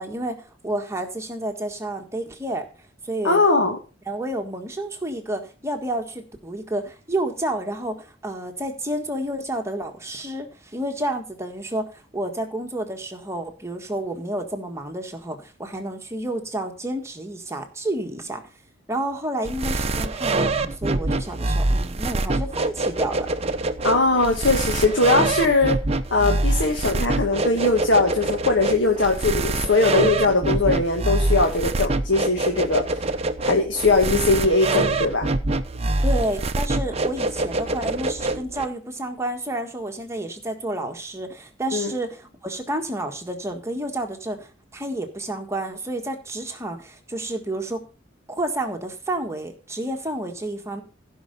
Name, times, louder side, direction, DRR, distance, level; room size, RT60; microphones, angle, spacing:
voice 1, 0.0-2.7 3.0-3.4 4.1-18.4 18.9-23.3 36.0-47.8 48.3-50.8, right 1 dB, 15° right, 4 dB, 1.6 m, -30 dB
voice 2, 3.2-3.8 23.8-25.8 26.1-32.8 33.4-35.3 41.7-41.9, left 3 dB, 70° left, 3 dB, 1.7 m, -20 dB
sound 1, 19.4-38.6, right 2 dB, 35° right, 0.8 m, -25 dB
15.5 x 5.6 x 5.4 m, 0.34 s
head